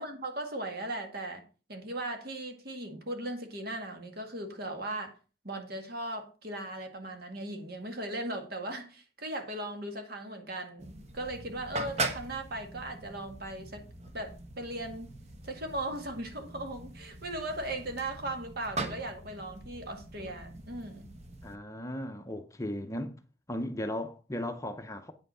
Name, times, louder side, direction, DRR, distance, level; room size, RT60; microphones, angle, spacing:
voice 1, 0.0-1.4 1.7-5.1 5.4-13.8 14.1-15.1 15.4-21.1, right 1 dB, 55° right, 1.9 m, -38 dB
sound 1, 10.8-21.6, right 2 dB, 35° right, 1.1 m, -41 dB
voice 2, 21.4-23.2 23.5-25.1, left 1 dB, 15° left, 0.7 m, -36 dB
9.1 x 5.8 x 5.5 m
head